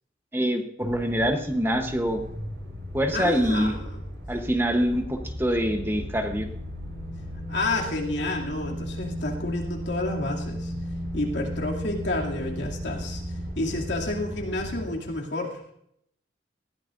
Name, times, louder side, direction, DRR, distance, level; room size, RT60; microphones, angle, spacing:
voice 1, 0.3-2.2 2.9-3.7 4.3-6.5, equal, 10° right, 5 dB, 0.9 m, -25 dB
sound 1, 0.8-14.9, equal, 60° right, 3.7 m, -35 dB
voice 2, 3.1-4.0 7.5-10.7 11.1-13.2 13.6-15.6, left 2 dB, 75° left, -1 dB, 2.6 m, -30 dB
20.0 x 14.5 x 2.6 m, 0.72 s
head